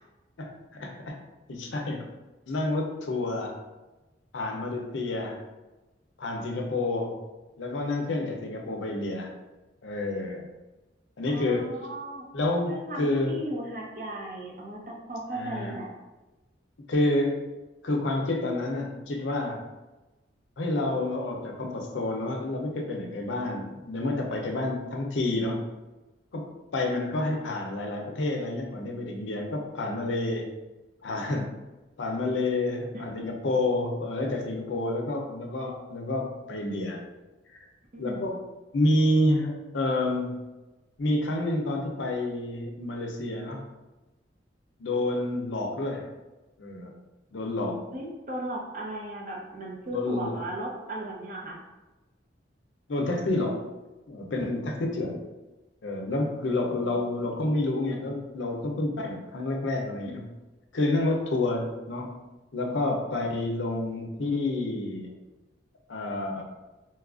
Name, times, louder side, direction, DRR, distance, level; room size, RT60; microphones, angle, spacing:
voice 1, 0.4-1.2 1.5-2.1 2.5-3.5 4.3-5.4 6.2-7.2 7.6-9.3 9.8-10.4 11.2-11.7 12.3-13.4 15.3-15.8 16.9-17.5 17.8-19.6 20.6-25.7 26.3-30.5 31.0-31.5 32.0-37.0 37.5-37.6 38.0-38.4 38.7-40.3 41.0-43.6 44.8-46.1 46.6-46.9 47.3-47.8 49.9-50.4 52.9-53.6 54.1-55.2 55.8-60.3 60.7-62.2 62.5-65.1 65.9-66.4, left 2 dB, 85° left, 2 dB, 0.6 m, -29 dB
voice 2, 11.3-12.3 12.7-15.9 32.9-33.3 37.9-38.4 47.9-51.6, right 1 dB, 45° right, -2 dB, 0.7 m, -37 dB
4.2 x 2.3 x 2.4 m, 1.1 s
head